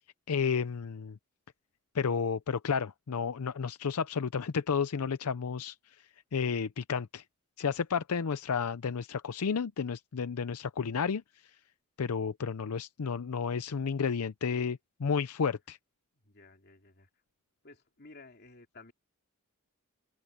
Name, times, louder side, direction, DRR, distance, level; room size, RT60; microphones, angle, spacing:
voice 1, 0.3-1.2 1.9-5.7 6.3-7.2 7.6-11.2 12.0-15.8, left 6 dB, 80° left, 0.6 m, -31 dB
voice 2, 16.2-17.1 17.6-18.9, left 3 dB, 45° left, 2.8 m, -54 dB
open air
head